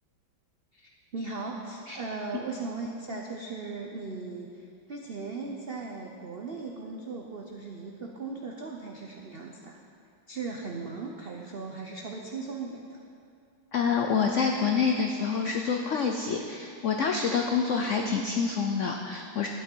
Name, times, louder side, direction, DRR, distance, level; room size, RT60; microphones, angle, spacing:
voice 1, 0.7-9.8 10.3-13.0, right 4 dB, 80° right, 0 dB, 0.5 m, -38 dB
voice 2, 13.7-19.5, left 5 dB, 90° left, 3 dB, 0.6 m, -27 dB
12.0 x 9.2 x 4.5 m, 2.4 s
omnidirectional pair, 2.1 m